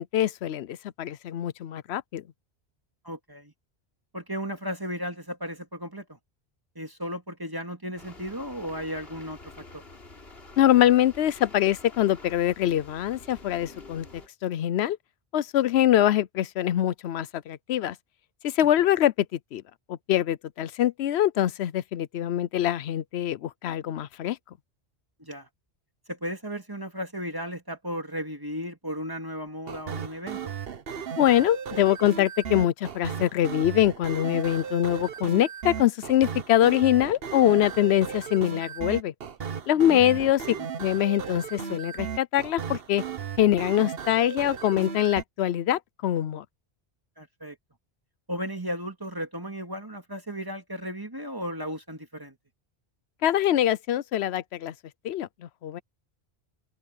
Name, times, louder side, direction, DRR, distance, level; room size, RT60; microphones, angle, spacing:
voice 1, 0.0-2.2 10.6-14.1 14.4-15.0 15.3-18.0 18.4-19.6 19.9-24.4 31.2-39.1 39.7-40.4 40.8-43.0 43.4-46.4 53.2-54.7 55.0-55.8, left 12 dB, 90° left, 0.9 m, -24 dB
voice 2, 3.0-3.5 4.1-6.2 6.8-9.8 25.2-25.5 26.1-30.5 39.8-40.7 47.2-47.6 48.3-52.4, equal, 20° right, 2.3 m, -35 dB
sound 1, 8.0-14.3, left 2 dB, 70° left, 3.4 m, -48 dB
sound 2, 29.7-45.2, right 7 dB, 65° right, 1.2 m, -35 dB
omnidirectional pair, 1.1 m